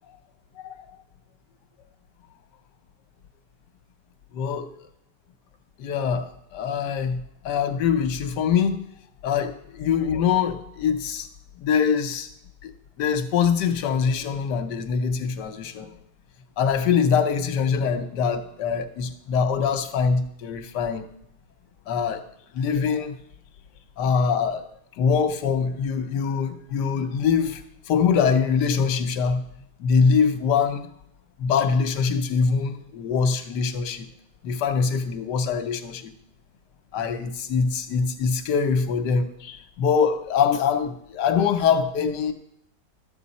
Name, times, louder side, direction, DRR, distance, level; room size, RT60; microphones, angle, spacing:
voice 1, 4.3-4.7 5.8-8.8 9.2-11.3 11.6-12.3 12.6-12.7 13.0-15.9 16.6-21.1 21.9-22.2 22.5-23.1 24.0-24.7 25.0-29.4 29.8-30.9 31.4-34.1 34.4-36.1 36.9-42.3, left 6 dB, 75° left, 8 dB, 1.5 m, -23 dB
13.0 x 7.9 x 4.2 m, 0.75 s
omnidirectional pair, 1.9 m